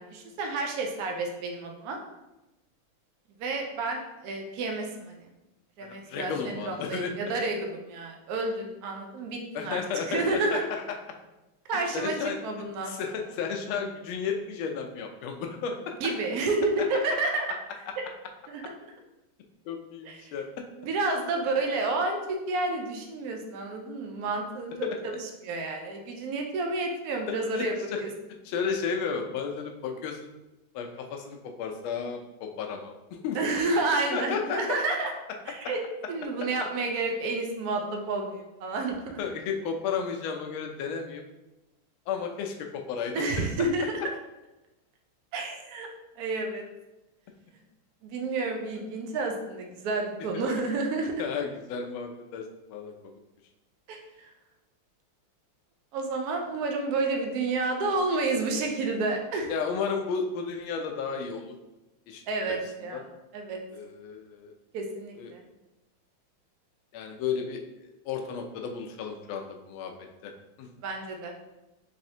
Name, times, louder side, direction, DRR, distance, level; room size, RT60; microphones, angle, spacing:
voice 1, 0.0-2.0 3.4-5.3 5.8-9.8 10.1-10.6 11.7-12.9 16.0-17.5 18.0-18.1 18.5-18.6 20.0-20.3 20.8-27.7 28.0-28.1 33.3-35.1 35.5-39.2 43.1-44.0 45.3-45.9 46.2-46.6 48.0-51.1 53.9-54.3 55.9-59.5 62.3-63.6 64.7-65.4 70.8-71.3, right 3 dB, 85° right, 2 dB, 0.8 m, -30 dB
voice 2, 5.8-7.1 9.5-10.8 11.9-12.4 12.9-15.9 19.7-20.5 24.8-24.9 27.3-27.6 27.9-28.0 28.4-30.2 30.7-33.4 34.1-34.8 39.2-41.2 42.1-43.5 51.2-52.9 59.5-61.5 62.1-62.2 62.9-63.0 63.7-64.5 65.1-65.3 66.9-67.6 68.1-69.9 70.2-70.3 70.6-70.7, left 6 dB, 80° left, 3 dB, 1.3 m, -33 dB
4.1 x 3.2 x 2.7 m, 1.0 s
omnidirectional pair, 2.3 m